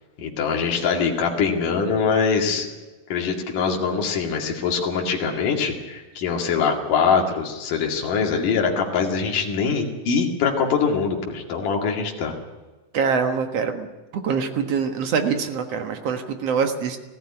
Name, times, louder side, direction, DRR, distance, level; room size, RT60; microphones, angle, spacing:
voice 1, 0.2-2.7 3.1-12.3, left 5 dB, 65° left, 0 dB, 3.8 m, -23 dB
voice 2, 12.9-13.9 14.1-17.0, right 6 dB, 55° right, 6 dB, 2.2 m, -24 dB
19.0 x 15.5 x 9.8 m, 1.2 s
omnidirectional pair, 4.1 m